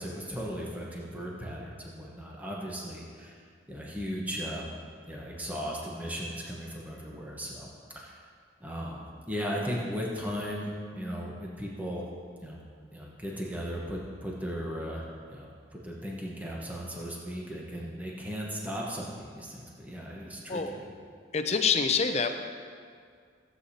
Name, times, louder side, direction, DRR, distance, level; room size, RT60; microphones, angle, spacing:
voice 1, 0.0-3.4 3.7-4.7 5.1-7.7 7.9-8.2 8.6-12.1 12.4-12.6 12.9-15.5 15.8-20.9, equal, 10° right, -3 dB, 1.0 m, -36 dB
voice 2, 21.3-22.3, left 5 dB, 35° left, 6 dB, 0.5 m, -26 dB
15.0 x 8.1 x 2.8 m, 2.1 s
head